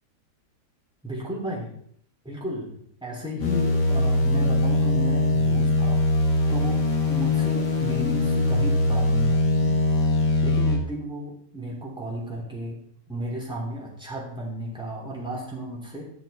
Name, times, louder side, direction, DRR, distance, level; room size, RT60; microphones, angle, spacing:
voice 1, 1.0-1.8 2.2-2.7 3.0-6.0 6.5-6.8 7.1-9.8 10.4-12.8 13.1-16.0, equal, 5° right, -4 dB, 3.2 m, -33 dB
sound 1, 3.4-10.8, left 2 dB, 80° left, 2.7 m, -22 dB
13.5 x 6.8 x 4.3 m, 0.67 s
omnidirectional pair, 1.8 m